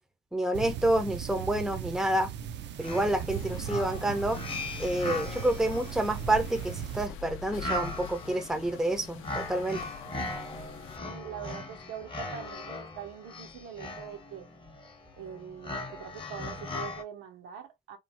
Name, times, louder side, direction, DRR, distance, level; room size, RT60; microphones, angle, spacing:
voice 1, 0.3-2.3 2.8-4.4 4.8-9.9, right 1 dB, ahead, 0.5 m, -28 dB
sound 1, 0.5-7.1, right 10 dB, 65° right, 0.4 m, -38 dB
sound 2, 2.5-2.6 2.8-17.0, left 2 dB, 25° left, 0.8 m, -39 dB
sound 3, 3.3-11.0, left 8 dB, 85° left, 0.4 m, -46 dB
voice 2, 11.0-14.5 15.2-18.0, right 9 dB, 85° right, 0.8 m, -43 dB
3.1 x 2.0 x 2.5 m
cardioid pair, 90°, 20 cm